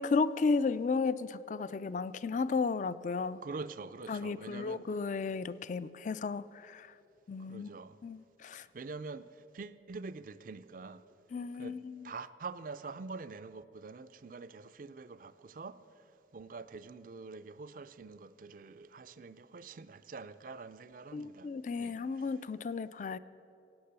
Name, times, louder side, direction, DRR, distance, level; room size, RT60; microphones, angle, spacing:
voice 1, 0.0-3.4 4.1-6.9 7.3-7.7 8.0-8.7 11.3-12.0 21.1-23.2, left 4 dB, 40° left, 0.3 m, -33 dB
voice 2, 3.4-4.8 7.5-8.0 8.5-11.0 11.5-11.8 12.0-15.8 16.3-21.5 21.8-22.4, right 4 dB, 45° right, 0.4 m, -45 dB
16.5 x 8.7 x 6.8 m
head